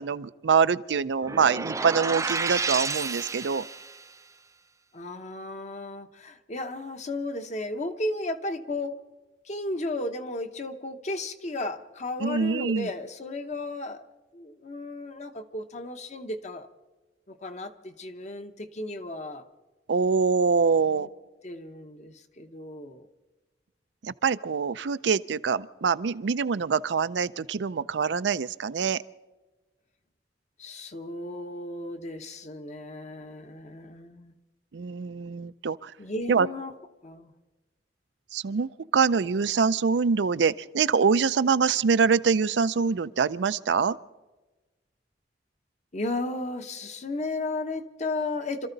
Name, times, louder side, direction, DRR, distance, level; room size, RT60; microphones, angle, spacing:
voice 1, 0.0-3.7 12.2-12.9 19.9-21.1 24.0-29.0 34.7-35.9 36.3-36.5 38.3-44.0, right 5 dB, 90° right, 14 dB, 0.5 m, -24 dB
sound 1, 1.2-4.0, right 4 dB, 20° right, 0.4 m, -30 dB
voice 2, 4.9-8.9 9.4-14.0 14.3-16.7 17.3-19.4 20.8-21.1 21.4-23.1 30.6-34.4 36.0-36.7 37.0-37.3 45.9-48.7, left 2 dB, 40° left, 8 dB, 1.0 m, -34 dB
26.5 x 13.5 x 4.0 m, 1.2 s
head